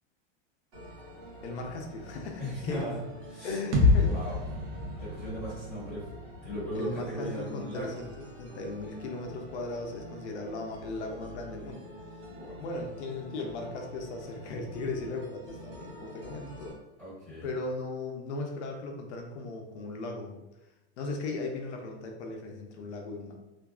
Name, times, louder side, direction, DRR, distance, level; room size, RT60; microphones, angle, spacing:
sound 1, 0.7-16.7, equal, 50° right, 1.1 m, -47 dB
voice 1, 1.4-2.8 3.4-4.2 6.7-11.9 12.6-16.8 17.4-20.4 21.0-23.3, left 3 dB, 75° left, 2 dB, 0.6 m, -37 dB
voice 2, 2.4-3.0 3.3-3.6 4.0-4.4 4.9-6.0 6.4-8.0 12.3-12.6 17.0-17.5, equal, 5° left, -14 dB, 1.2 m, -37 dB
sound 2, 3.7-7.6, left 3 dB, 75° right, 0.7 m, -28 dB
2.5 x 2.3 x 2.3 m, 1.0 s
supercardioid pair, 170°, 34 cm